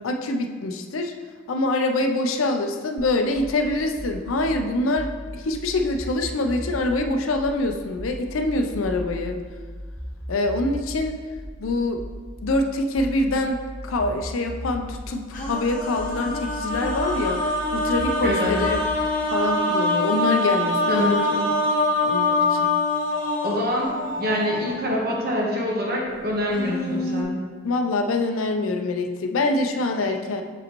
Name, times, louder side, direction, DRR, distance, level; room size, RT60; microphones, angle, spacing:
voice 1, 0.0-1.1 1.5-9.4 10.3-11.1 11.6-12.0 12.4-17.4 17.7-18.9 19.3-21.4 22.0-22.7 27.6-30.4, left 2 dB, 90° left, 5 dB, 0.5 m, -25 dB
sound 1, 3.0-19.0, equal, 5° right, 0.4 m, -37 dB
sound 2, 15.3-24.9 26.2-26.3 26.5-27.2, left 2 dB, 40° left, 1.0 m, -24 dB
voice 2, 18.2-18.6 20.9-21.3 23.4-27.4, equal, 50° right, -2 dB, 1.2 m, -25 dB
6.3 x 5.0 x 3.0 m, 1.5 s
head